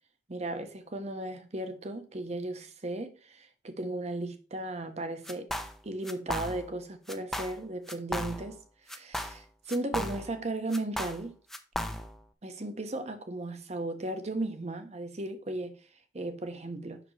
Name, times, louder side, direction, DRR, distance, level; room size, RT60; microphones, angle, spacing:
voice 1, 0.3-5.5 5.8-8.6 8.8-11.3 12.4-15.8 16.1-17.0, right 2 dB, 40° right, 0.9 m, -36 dB
sound 1, 5.3-5.8 6.0-6.8 7.1-7.6 7.9-8.6 8.9-10.4 10.7-12.2, equal, ahead, 0.6 m, -36 dB
7.7 x 6.0 x 3.2 m
head